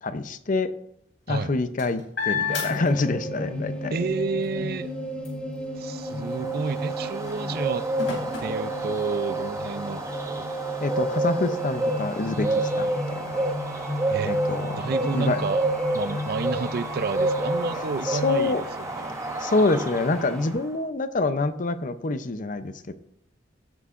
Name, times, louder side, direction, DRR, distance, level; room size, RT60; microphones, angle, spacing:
voice 1, 0.0-0.7 1.3-3.9 10.8-13.4 14.2-14.9 15.1-15.4 18.0-18.6 19.4-22.9, left 3 dB, 45° left, 0.6 m, -26 dB
sound 1, 1.2-3.6 4.0-9.5 10.1-10.2 10.6-18.5, left 6 dB, 85° left, 3.4 m, -38 dB
sound 2, 2.4-20.5, right 1 dB, 5° left, 1.8 m, -34 dB
voice 2, 3.9-4.9 5.8-7.8 8.4-10.5 14.1-14.4 14.8-15.7 15.9-19.2, right 4 dB, 55° right, 0.4 m, -30 dB
Bird, 6.0-20.7, right 1 dB, 15° right, 0.8 m, -29 dB
15.5 x 8.0 x 2.5 m
head